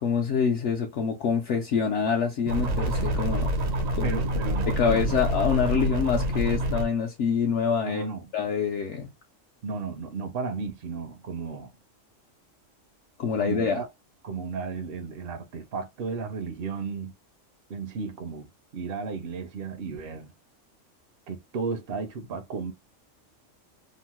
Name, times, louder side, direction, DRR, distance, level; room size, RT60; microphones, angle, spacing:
voice 1, 0.0-3.5 3.9-4.2 4.7-8.1 8.3-9.1 13.2-13.8, left 6 dB, 70° left, 0.8 m, -26 dB
sound 1, 2.5-6.9, equal, 85° right, 1.2 m, -27 dB
voice 2, 4.0-5.2 7.8-8.3 9.6-11.8 13.4-13.9 14.2-17.1 17.7-20.3 21.3-22.7, right 5 dB, 60° right, 0.6 m, -34 dB
2.9 x 2.0 x 2.9 m
omnidirectional pair, 1.3 m